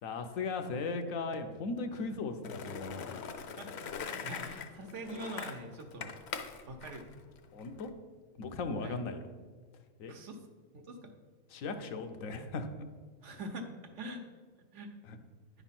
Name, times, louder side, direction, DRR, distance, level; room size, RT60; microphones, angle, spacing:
voice 1, 0.0-3.1 7.5-7.9 8.4-9.3 10.0-10.1 11.5-12.7 15.1-15.2, left 3 dB, 85° left, 6 dB, 1.1 m, -37 dB
Skateboard, 2.4-7.9, left 6 dB, 60° left, 0.8 m, -42 dB
voice 2, 3.6-6.1 6.6-7.0 8.8-9.0 10.0-10.4 10.7-11.1 13.2-14.3 14.7-14.9, right 1 dB, 65° right, 4 dB, 1.2 m, -44 dB
10.0 x 3.6 x 5.8 m, 1.4 s
omnidirectional pair, 1.4 m